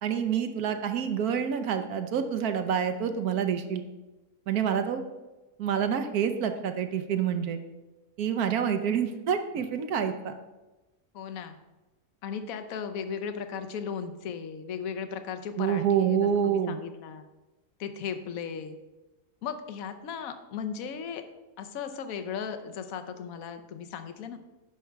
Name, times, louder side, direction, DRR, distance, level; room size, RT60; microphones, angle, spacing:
voice 1, 0.0-3.8 4.5-5.0 5.6-7.6 8.2-10.4 15.6-16.8, right 8 dB, 70° right, 8 dB, 1.2 m, -27 dB
voice 2, 11.1-11.6 12.2-16.2 16.4-17.2 17.8-18.8 19.4-21.2 21.6-24.4, left 7 dB, 65° left, 8 dB, 1.1 m, -36 dB
9.5 x 6.1 x 4.6 m, 1.1 s
omnidirectional pair, 1.7 m